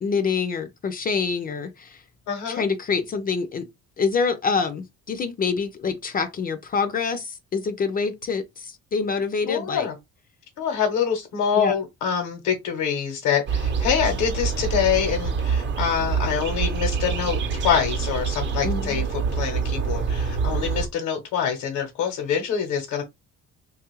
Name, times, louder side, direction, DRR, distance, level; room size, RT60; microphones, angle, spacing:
voice 1, 0.0-2.0 2.5-3.7 4.0-9.9 11.5-11.8 18.6-19.0, left 5 dB, 30° left, 0.4 m, -26 dB
voice 2, 2.3-2.6 9.4-9.9 10.6-23.1, left 7 dB, 90° left, 0.9 m, -25 dB
sound 1, 13.5-20.9, right 5 dB, 40° right, 0.6 m, -26 dB
3.0 x 2.3 x 3.0 m
cardioid pair, 135°, 30 cm